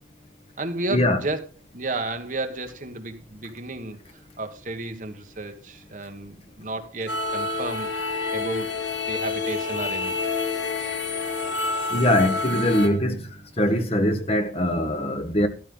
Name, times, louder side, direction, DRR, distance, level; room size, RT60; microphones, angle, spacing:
voice 1, 0.6-1.4 1.7-4.0 4.4-7.9 8.3-8.7 9.1-10.3, right 2 dB, 40° right, 1.6 m, -32 dB
sound 1, 7.1-12.9, left 3 dB, 75° left, 2.7 m, -28 dB
voice 2, 11.9-13.3 13.6-15.5, left 1 dB, 30° left, 1.4 m, -22 dB
13.5 x 12.5 x 3.9 m
head